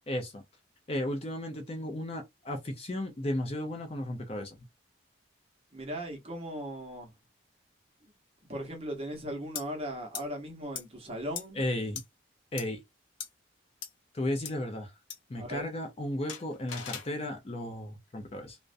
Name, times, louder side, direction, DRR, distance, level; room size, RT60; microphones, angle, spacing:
voice 1, 0.1-0.4 0.9-4.6 11.5-12.0 12.5-12.8 14.1-14.9 15.3-18.6, left 1 dB, 30° left, 0.4 m, -34 dB
voice 2, 5.7-7.1 8.0-8.1 8.5-11.6 15.4-15.7, equal, 30° right, 0.8 m, -38 dB
sound 1, 9.6-9.7 10.1-10.2 10.8-10.9 11.4-11.5 12.0-12.1 12.6-12.7 13.2-13.3 13.8-13.9 14.5-14.6 15.1-15.2 16.3-17.1, left 8 dB, 75° left, 0.6 m, -38 dB
2.4 x 2.1 x 2.4 m
head